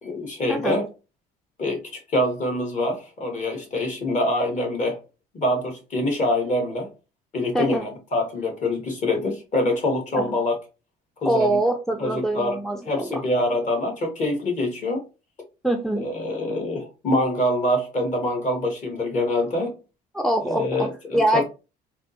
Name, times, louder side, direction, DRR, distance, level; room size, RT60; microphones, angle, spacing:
voice 1, 0.0-0.9 1.6-5.0 5.3-6.9 7.3-10.6 11.2-11.6 12.0-12.6 12.8-15.0 15.9-19.8 20.5-21.4, left 1 dB, 45° left, 1.4 m, -25 dB
voice 2, 11.3-13.2 15.6-16.0 20.1-21.5, right 1 dB, ahead, 0.4 m, -24 dB
4.1 x 2.0 x 2.8 m
supercardioid pair, 90°, 18 cm